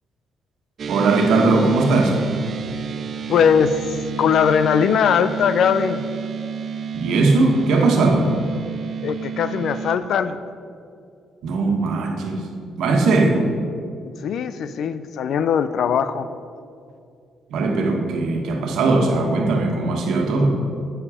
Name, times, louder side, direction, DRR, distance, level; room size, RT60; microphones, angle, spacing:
sound 1, 0.8-10.0, right 6 dB, 50° right, 0.5 m, -30 dB
voice 1, 0.9-2.2 6.9-8.3 11.4-12.4 12.8-13.4 17.5-20.5, right 3 dB, 80° right, 2 dB, 1.3 m, -19 dB
voice 2, 3.3-3.8 4.2-6.0 9.0-10.4 14.2-16.3, left 7 dB, 70° left, 12 dB, 0.5 m, -20 dB
8.9 x 7.3 x 4.9 m, 2.4 s
cardioid pair, 90°, 0 cm